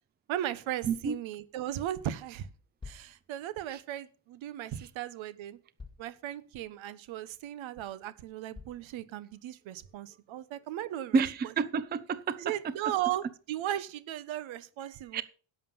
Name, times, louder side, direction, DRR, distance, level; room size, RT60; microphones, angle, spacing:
voice 1, 0.3-2.5 2.8-5.6 6.0-11.2 12.4-15.2, right 12 dB, 75° right, 1.1 m, -36 dB
voice 2, 0.9-1.2 3.7-3.8 11.1-12.4 15.1-15.2, right 5 dB, 20° right, 0.5 m, -29 dB
sound 1, 2.8-3.1 4.7-4.8 5.8-6.1 6.7-6.8 7.4-7.5 8.5-8.9, left 4 dB, 10° left, 2.1 m, -47 dB
11.0 x 7.6 x 5.6 m
cardioid pair, 145°, 48 cm